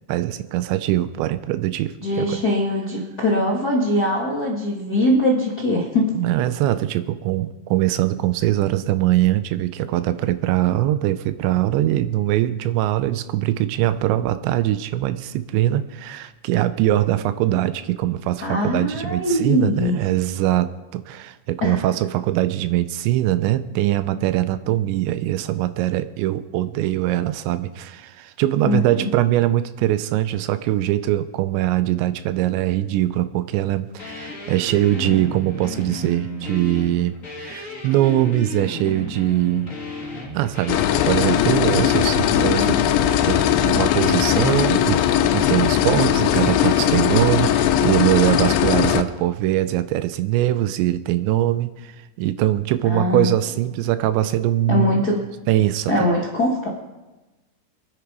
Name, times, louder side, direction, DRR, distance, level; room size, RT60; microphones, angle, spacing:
voice 1, 0.1-2.4 6.2-39.7 40.3-42.8 43.3-45.0 45.3-51.9 52.2-55.1 55.5-55.9, right 14 dB, 90° right, 12 dB, 3.0 m, -22 dB
voice 2, 2.0-6.1 18.4-20.0 21.6-21.8 28.6-29.1 42.4-42.8 52.8-53.3 54.7-55.2 55.9-56.7, left 1 dB, 70° left, -3 dB, 0.9 m, -22 dB
sound 1, 34.0-47.1, left 2 dB, 25° left, 1.9 m, -34 dB
sound 2, 40.7-49.0, left 11 dB, 90° left, 3.1 m, -19 dB
24.5 x 9.9 x 4.7 m, 1.1 s
omnidirectional pair, 5.1 m